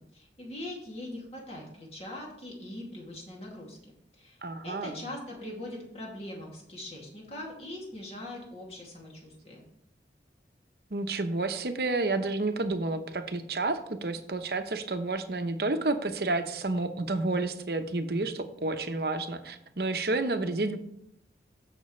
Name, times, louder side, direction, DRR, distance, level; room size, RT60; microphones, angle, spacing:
voice 1, 0.0-3.9 4.2-4.4 4.6-9.7, left 1 dB, 35° left, -2 dB, 2.4 m, -41 dB
voice 2, 4.4-5.0 10.9-20.8, right 2 dB, 60° right, 8 dB, 0.9 m, -30 dB
15.0 x 6.0 x 3.2 m, 0.75 s
head